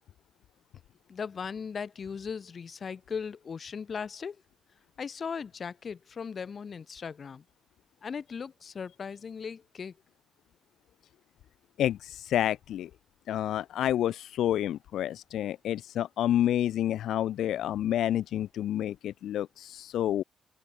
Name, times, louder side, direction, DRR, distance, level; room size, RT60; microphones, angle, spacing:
voice 1, 1.1-4.4 5.0-7.4 8.0-10.0, left 6 dB, 40° left, 4.7 m, -38 dB
voice 2, 11.8-12.9 13.3-20.2, left 11 dB, 90° left, 0.8 m, -29 dB
open air
cardioid pair, 145°, 0 cm